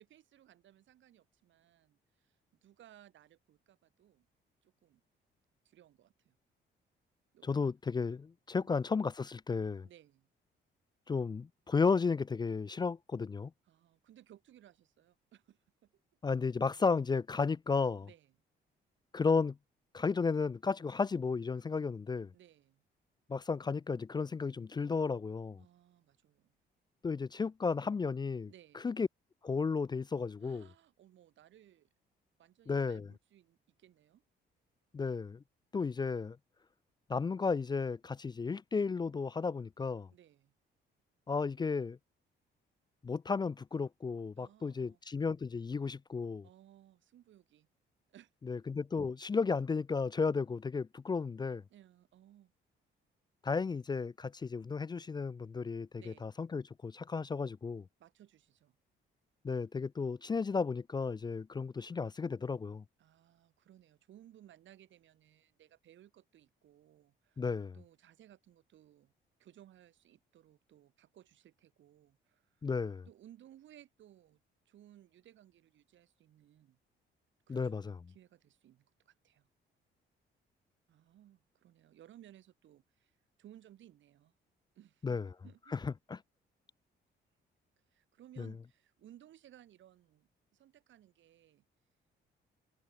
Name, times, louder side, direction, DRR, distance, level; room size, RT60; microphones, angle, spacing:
voice 1, 0.0-4.3 4.6-5.0 5.6-6.3 7.3-7.6 8.6-8.8 9.8-10.3 13.7-16.0 18.0-18.4 22.3-22.9 25.6-26.6 28.5-28.9 30.4-31.9 32.4-34.2 40.1-40.5 44.4-45.0 46.4-47.7 48.1-48.6 51.7-52.5 55.9-56.3 58.0-58.8 63.0-67.4 67.7-69.1 69.4-72.7 73.1-74.4 74.7-76.8 77.5-77.8 78.1-79.5 80.9-84.3 84.7-85.9 87.9-91.6, right 12 dB, 75° right, 2.6 m, -61 dB
voice 2, 7.4-9.9 11.1-13.5 16.2-18.1 19.1-19.6 19.9-22.3 23.3-25.6 27.0-28.5 28.8-29.1 29.4-30.7 32.7-33.1 34.9-35.4 35.7-36.4 37.1-40.1 41.3-42.0 43.0-46.5 48.5-51.6 53.4-57.9 59.4-62.8 67.4-67.8 72.6-73.1 77.5-78.0 85.0-85.3 85.7-86.2 88.4-88.5, left 4 dB, 20° left, 0.4 m, -33 dB
cardioid pair, 90°, 20 cm